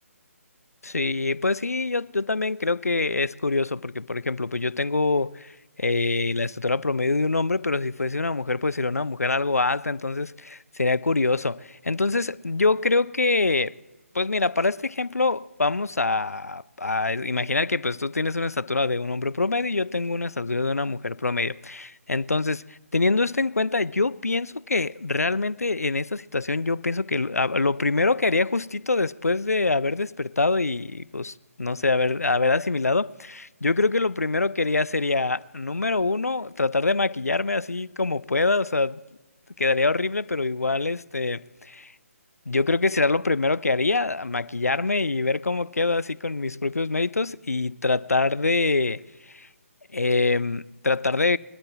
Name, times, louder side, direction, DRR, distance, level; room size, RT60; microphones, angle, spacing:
voice 1, 0.8-5.5 5.8-13.8 14.1-39.0 39.6-41.9 42.5-49.5 49.9-51.4, left 3 dB, 85° left, 0.4 m, -25 dB
22.0 x 12.5 x 3.0 m
figure-of-eight pair, 145°, 8 cm